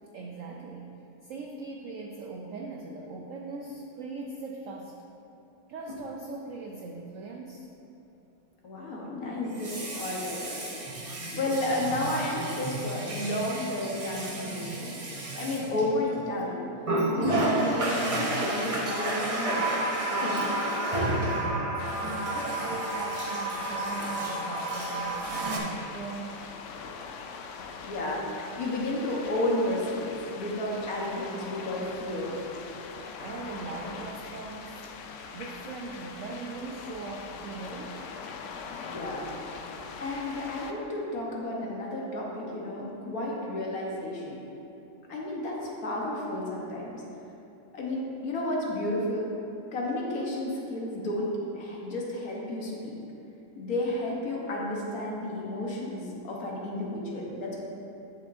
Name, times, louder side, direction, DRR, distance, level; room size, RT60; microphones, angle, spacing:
voice 1, 0.0-0.9 1.2-5.0 5.7-7.7 21.0-21.9 22.3-26.4 33.2-34.9 35.3-38.0, right 3 dB, 75° right, 1 dB, 0.7 m, -40 dB
Water tap faucet, 5.9-6.0 9.4-16.3 16.8-25.6, right 2 dB, 45° right, 0.4 m, -31 dB
voice 2, 8.6-11.0 11.3-15.0 15.3-16.7 17.2-20.6 27.8-32.5 38.8-39.3 40.0-44.4 45.1-47.0 47.7-49.3 49.7-53.0 53.6-57.5, left 1 dB, 60° left, -3 dB, 1.5 m, -32 dB
sound 1, 21.8-40.7, left 5 dB, 90° left, 0.6 m, -42 dB
10.5 x 6.1 x 2.6 m, 2.9 s
omnidirectional pair, 1.9 m